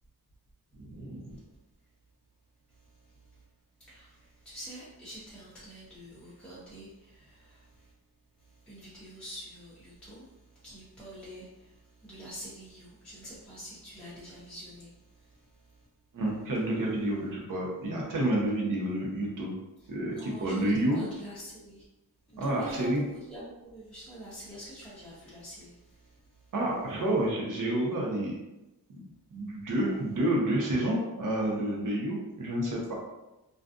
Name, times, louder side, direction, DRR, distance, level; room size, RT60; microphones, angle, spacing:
voice 1, 0.8-1.3 16.1-19.5 19.9-21.0 22.4-23.0 26.5-28.3 28.9-29.0 29.3-33.0, right 1 dB, 55° right, -3 dB, 0.9 m, -29 dB
voice 2, 4.4-7.6 8.7-10.3 10.6-11.5 12.0-14.9 20.1-21.8 22.3-23.0 23.3-25.8, equal, 5° left, -10 dB, 0.7 m, -45 dB
2.4 x 2.3 x 2.5 m, 0.98 s
cardioid pair, 85°, 38 cm